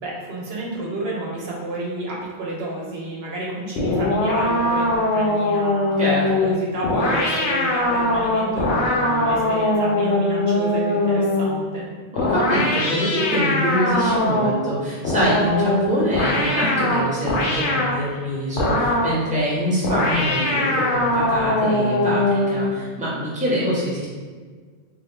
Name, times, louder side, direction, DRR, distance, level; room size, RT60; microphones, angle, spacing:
voice 1, 0.0-11.9, right 2 dB, 70° right, -4 dB, 0.9 m, -31 dB
sound 1, 3.8-11.6 12.2-14.7 15.0-18.0 18.6-19.2 19.8-22.7, left 1 dB, 90° left, 0.9 m, -21 dB
voice 2, 6.0-6.5 12.1-24.1, equal, 10° right, -7 dB, 0.8 m, -24 dB
3.0 x 2.3 x 3.2 m, 1.5 s
omnidirectional pair, 1.1 m